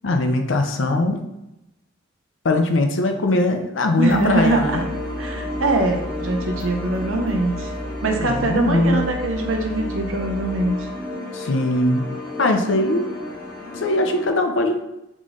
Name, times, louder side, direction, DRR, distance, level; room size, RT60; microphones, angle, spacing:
voice 1, 0.0-1.2 2.4-4.8 8.2-9.1 11.3-12.1 12.4-13.1 13.8-14.8, left 2 dB, 70° left, 5 dB, 0.6 m, -20 dB
voice 2, 4.0-4.8 5.2-7.7 8.0-10.9, right 2 dB, 85° right, 3 dB, 0.8 m, -22 dB
sound 1, 4.1-10.7, right 1 dB, 25° right, 0.7 m, -34 dB
sound 2, 4.3-14.3, left 2 dB, 40° left, 1.5 m, -32 dB
3.7 x 3.1 x 3.8 m, 0.89 s
head